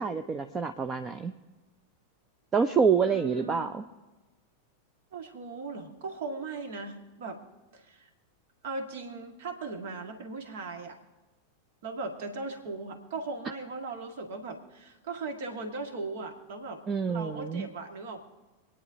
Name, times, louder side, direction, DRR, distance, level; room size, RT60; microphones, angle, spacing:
voice 1, 0.0-1.3 2.5-3.8 16.9-17.7, right 6 dB, 20° right, 8 dB, 0.6 m, -27 dB
voice 2, 3.0-3.7 5.1-7.4 7.7-8.1 8.6-11.0 11.8-16.8 17.1-18.2, right 3 dB, 55° right, 5 dB, 1.8 m, -38 dB
26.0 x 9.9 x 2.8 m, 1.2 s
figure-of-eight pair, 90°, 0 cm